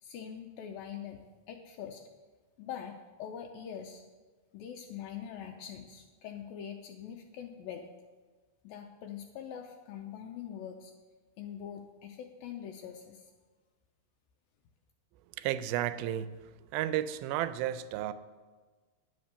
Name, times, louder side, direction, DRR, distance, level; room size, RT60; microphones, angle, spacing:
voice 1, 0.0-2.0 2.6-4.0 4.5-7.9 8.6-10.9 11.4-13.3, left 8 dB, 80° left, 3 dB, 2.2 m, -43 dB
voice 2, 15.4-18.1, right 12 dB, 80° right, 13 dB, 2.3 m, -33 dB
10.5 x 7.9 x 6.8 m, 1.3 s
omnidirectional pair, 4.5 m